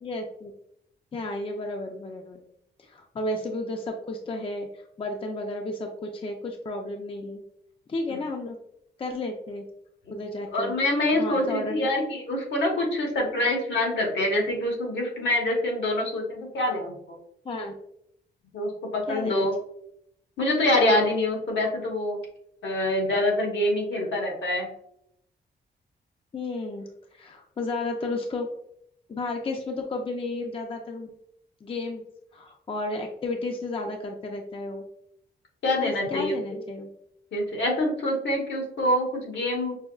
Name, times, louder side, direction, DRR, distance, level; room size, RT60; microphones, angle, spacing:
voice 1, 0.0-0.5 1.1-2.4 2.8-7.4 7.9-8.6 9.0-9.7 10.1-10.8 11.1-11.9 17.4-17.7 19.1-19.5 26.3-28.5 29.1-31.1 31.6-32.0 32.3-34.9 35.8-36.9, left 2 dB, 30° left, 3 dB, 0.5 m, -33 dB
voice 2, 10.5-17.2 18.5-19.5 20.4-22.2 22.6-24.7 35.6-36.4 37.3-39.8, left 1 dB, 75° left, 0 dB, 1.2 m, -25 dB
5.5 x 2.3 x 2.3 m, 0.72 s
cardioid pair, 95°, 19 cm